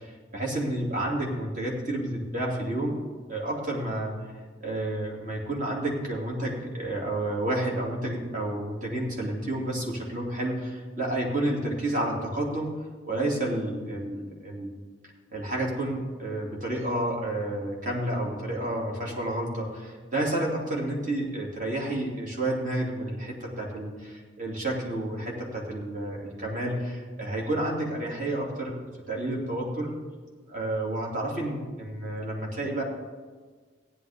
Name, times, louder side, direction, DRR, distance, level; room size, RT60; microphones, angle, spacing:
voice 1, 0.0-3.0 3.3-4.1 4.6-12.7 13.1-14.7 15.3-28.8 29.1-29.9 30.5-32.8, right 1 dB, 45° right, -2 dB, 2.6 m, -30 dB
15.0 x 10.0 x 3.6 m, 1.5 s
head